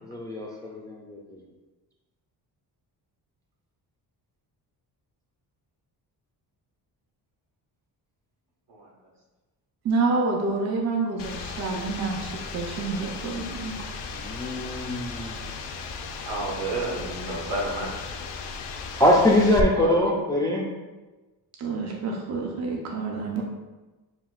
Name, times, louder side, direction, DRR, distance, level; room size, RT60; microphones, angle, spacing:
voice 1, 0.0-1.4 14.1-15.4 19.0-20.6 23.4-23.5, left 1 dB, 10° left, -3 dB, 0.3 m, -23 dB
voice 2, 9.8-13.7 21.6-23.4, right 3 dB, 40° right, 0 dB, 0.6 m, -28 dB
sound 1, 11.2-19.6, left 5 dB, 85° left, 0.6 m, -36 dB
voice 3, 16.2-18.1 19.7-20.1, right 2 dB, 75° right, -3 dB, 1.4 m, -30 dB
7.2 x 2.8 x 2.4 m, 1.2 s
wide cardioid pair, 175°, 41 cm